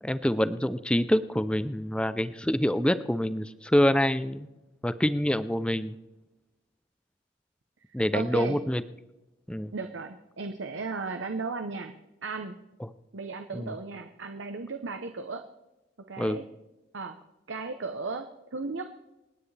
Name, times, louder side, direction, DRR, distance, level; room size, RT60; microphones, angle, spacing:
voice 1, 0.0-4.5 4.8-6.0 7.9-8.8 9.5-9.7 13.5-13.7 16.2-16.4, equal, 5° left, 13 dB, 0.4 m, -26 dB
voice 2, 8.1-8.6 9.7-11.9 12.2-12.6 13.1-15.4 16.1-16.4 16.9-17.2 17.5-18.9, right 4 dB, 75° right, 6 dB, 0.8 m, -35 dB
27.0 x 9.6 x 3.3 m, 1.0 s
head